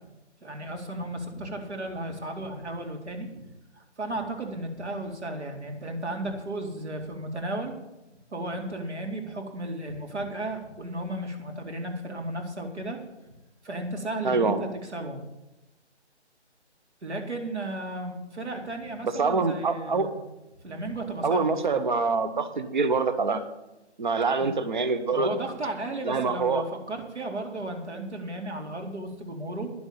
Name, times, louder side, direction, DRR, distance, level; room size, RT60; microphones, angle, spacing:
voice 1, 0.4-3.4 3.8-7.7 8.3-13.0 13.6-15.2 17.0-20.2 20.6-21.8 25.1-29.7, right 1 dB, 70° right, 3 dB, 2.6 m, -34 dB
voice 2, 14.2-14.6 19.2-20.1 21.2-23.4 24.0-25.3 26.0-26.6, right 4 dB, 40° right, 10 dB, 0.9 m, -25 dB
11.0 x 6.3 x 8.8 m, 0.97 s
figure-of-eight pair, 165°, 35 cm